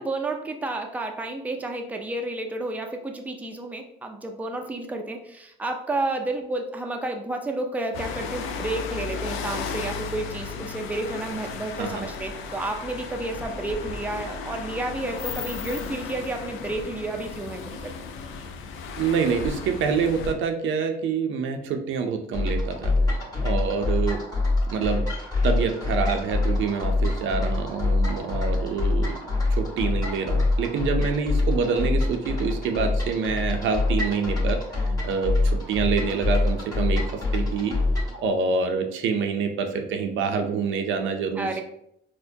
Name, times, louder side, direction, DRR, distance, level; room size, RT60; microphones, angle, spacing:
voice 1, 0.0-17.9 18.4-18.5 41.3-41.6, right 2 dB, 10° right, 3 dB, 0.4 m, -31 dB
sound 1, 7.9-20.3, left 5 dB, 90° left, 0.5 m, -35 dB
voice 2, 19.0-22.9 23.4-24.2 24.7-25.1 25.4-29.2 29.5-37.7 38.2-41.6, right 5 dB, 75° right, 5 dB, 0.5 m, -26 dB
sound 2, 22.3-38.2, left 2 dB, 20° left, 1.5 m, -25 dB
4.3 x 2.1 x 2.7 m, 0.75 s
cardioid pair, 90°, 20 cm